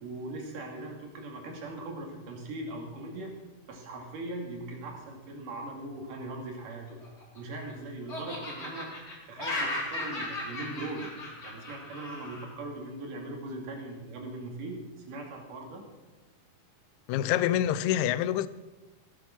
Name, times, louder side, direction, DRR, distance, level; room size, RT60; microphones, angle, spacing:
voice 1, 0.0-3.3 3.7-7.0 7.3-8.9 9.3-11.1 11.4-14.8 15.1-15.8, right 2 dB, 70° right, 4.0 m, -40 dB
Laughter, 6.9-7.7 8.1-12.5, left 2 dB, 25° left, 3.0 m, -36 dB
voice 2, 17.1-18.5, left 11 dB, 85° left, 1.7 m, -26 dB
17.5 x 9.1 x 5.9 m
omnidirectional pair, 3.9 m